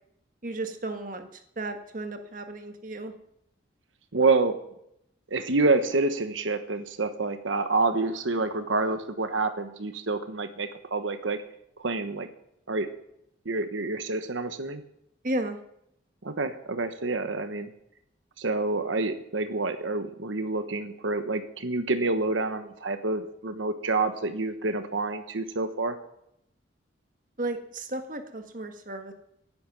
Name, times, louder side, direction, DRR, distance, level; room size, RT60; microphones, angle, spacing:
voice 1, 0.4-3.1 15.2-15.6 27.4-29.1, right 2 dB, 45° right, 6 dB, 1.6 m, -34 dB
voice 2, 4.1-4.5 5.3-11.4 11.8-12.3 12.7-12.9 13.4-14.8 16.2-17.7 18.4-25.9, right 3 dB, 90° right, 8 dB, 1.2 m, -27 dB
17.5 x 10.5 x 6.1 m, 0.77 s
head